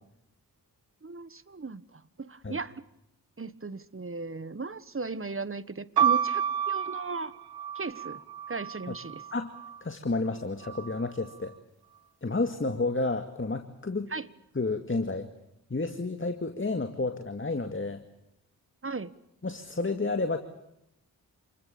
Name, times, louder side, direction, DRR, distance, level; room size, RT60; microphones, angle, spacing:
voice 1, 1.0-2.8 3.4-7.3 7.7-8.2 8.5-9.2 14.1-14.3 18.8-19.1, right 4 dB, 35° right, 16 dB, 1.4 m, -37 dB
sound 1, 6.0-9.8 10.6-11.3, right 8 dB, 80° right, 1.1 m, -30 dB
voice 2, 9.8-11.6 12.2-14.1 14.6-15.3 15.7-18.0 19.4-20.4, left 3 dB, 30° left, 7 dB, 2.2 m, -30 dB
28.0 x 21.0 x 7.1 m, 0.84 s
cardioid pair, 40°, 38 cm